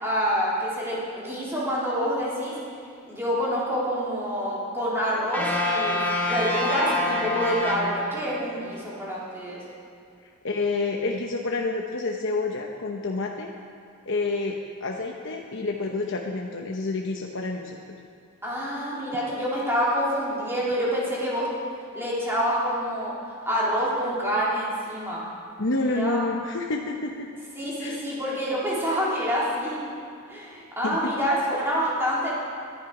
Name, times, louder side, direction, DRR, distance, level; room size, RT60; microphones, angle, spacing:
voice 1, 0.0-2.5 3.1-6.0 6.3-9.6 18.4-21.5 21.9-23.1 23.5-25.2 25.8-26.2 27.6-29.8 30.3-32.3, equal, 10° right, -7 dB, 3.9 m, -27 dB
sound 1, 5.3-8.6, left 1 dB, 10° left, 2.2 m, -27 dB
voice 2, 10.4-13.5 14.1-17.8 25.6-27.3 27.8-28.0 30.8-31.1, left 3 dB, 60° left, 1 dB, 1.0 m, -28 dB
20.5 x 11.0 x 5.0 m, 2.4 s
head